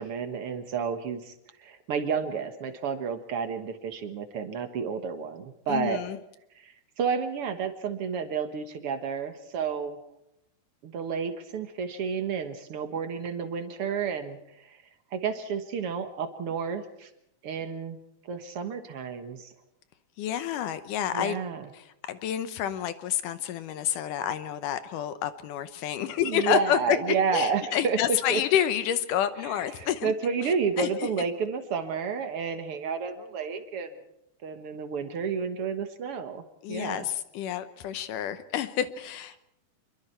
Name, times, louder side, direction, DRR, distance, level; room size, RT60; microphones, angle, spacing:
voice 1, 0.0-1.3 1.6-6.0 6.6-10.0 10.8-14.8 15.1-17.1 17.4-18.0 18.3-19.5 21.1-21.7 26.2-28.4 29.4-34.0 34.4-36.4 36.7-37.1, right 6 dB, 55° right, 7 dB, 1.8 m, -31 dB
voice 2, 5.7-6.2 20.2-21.4 21.7-27.0 27.3-30.1 30.8-31.1 36.6-39.4, left 10 dB, 75° left, 12 dB, 2.4 m, -29 dB
26.5 x 22.5 x 4.5 m, 0.79 s
omnidirectional pair, 3.9 m